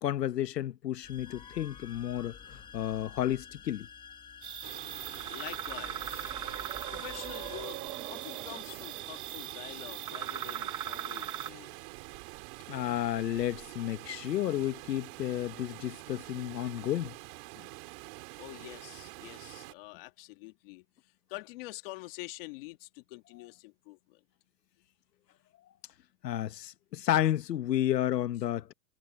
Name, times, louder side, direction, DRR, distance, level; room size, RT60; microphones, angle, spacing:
voice 1, 0.0-3.9 12.7-17.1 26.2-28.7, left 12 dB, 90° left, 1.2 m, -31 dB
sound 1, 1.0-7.6, left 7 dB, 10° left, 1.3 m, -50 dB
sound 2, 4.4-11.5, right 11 dB, 10° right, 0.6 m, -39 dB
Water, 4.6-19.7, right 29 dB, 35° right, 4.5 m, -47 dB
voice 2, 5.3-6.3 6.9-7.8 8.1-11.7 18.4-20.8 21.3-24.2, left 21 dB, 35° left, 1.6 m, -46 dB
hypercardioid pair, 165°, 48 cm